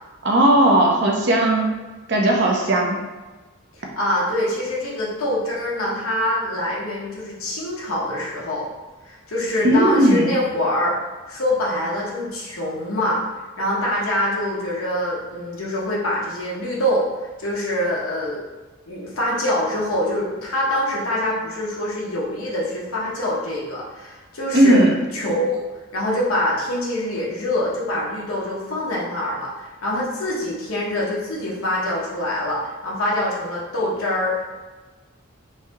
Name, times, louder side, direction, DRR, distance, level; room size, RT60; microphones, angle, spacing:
voice 1, 0.2-1.7 2.1-3.0 9.6-10.4 24.5-25.0, right 1 dB, 50° right, 0 dB, 0.6 m, -16 dB
voice 2, 3.8-8.7 9.0-10.9 11.3-13.2 13.6-17.1 17.4-18.4 18.9-25.6 25.9-34.5, left 1 dB, 80° left, -5 dB, 1.1 m, -24 dB
3.2 x 2.7 x 3.5 m, 1.2 s
head